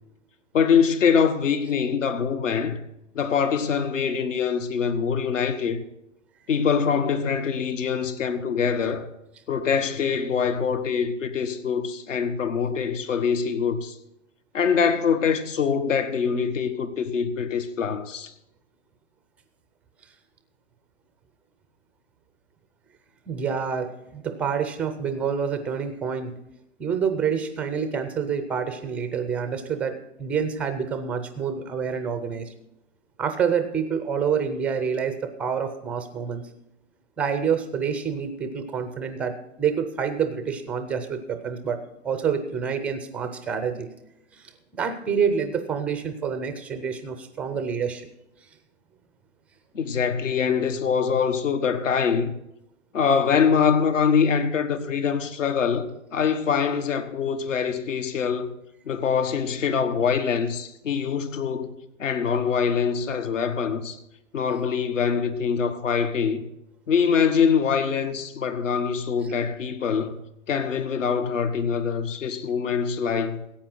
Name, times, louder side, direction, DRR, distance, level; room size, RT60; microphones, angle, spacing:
voice 1, 0.5-2.8 3.1-5.8 6.5-9.1 9.5-13.9 14.5-18.3 49.7-52.3 52.9-58.5 58.9-64.0 64.3-66.4 66.9-70.2 70.5-73.4, left 6 dB, 75° left, 1.5 m, -24 dB
voice 2, 23.3-26.4 26.8-32.5 33.2-36.4 37.2-41.8 42.0-43.9 44.3-48.1, right 6 dB, 5° right, 0.4 m, -27 dB
15.0 x 8.8 x 6.0 m
hypercardioid pair, 130°, 38 cm